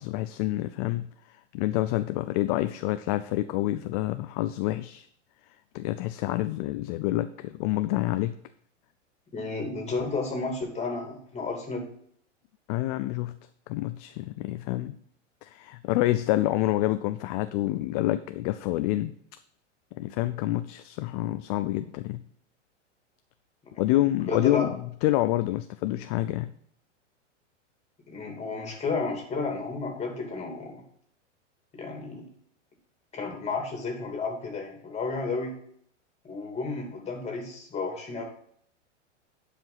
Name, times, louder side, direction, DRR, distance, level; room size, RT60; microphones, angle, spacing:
voice 1, 0.0-5.1 5.7-8.4 12.7-13.4 13.7-15.0 15.4-19.1 19.9-22.2 23.8-26.5, left 16 dB, 35° left, 11 dB, 0.4 m, -28 dB
voice 2, 9.3-11.8 23.9-24.0 24.3-24.7 28.1-30.8 31.7-32.3 33.1-35.5 36.2-38.2, left 3 dB, 15° left, 2 dB, 2.8 m, -32 dB
10.5 x 5.0 x 5.6 m, 0.65 s
hypercardioid pair, 115°, 37 cm